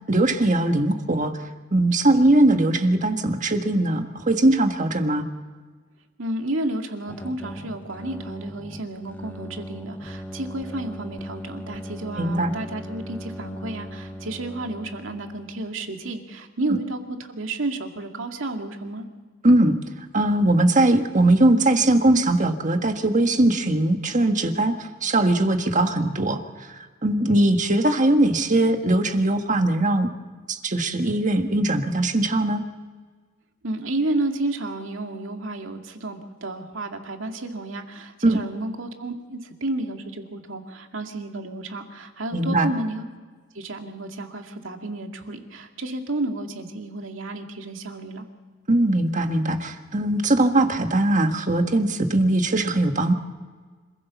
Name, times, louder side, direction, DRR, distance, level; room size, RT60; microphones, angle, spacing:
voice 1, 0.1-1.4 1.7-5.3 12.2-12.6 19.4-19.8 20.1-26.7 27.0-30.1 30.5-32.6 38.2-38.4 42.3-42.7 48.7-53.1, right 1 dB, 40° right, 6 dB, 1.6 m, -20 dB
voice 2, 6.2-17.0 17.3-19.1 33.6-43.0 43.5-48.3, right 2 dB, 80° right, 4 dB, 2.3 m, -31 dB
sound 1, 7.1-15.7, equal, 10° left, 1.3 m, -38 dB
26.5 x 16.0 x 7.1 m, 1.4 s
head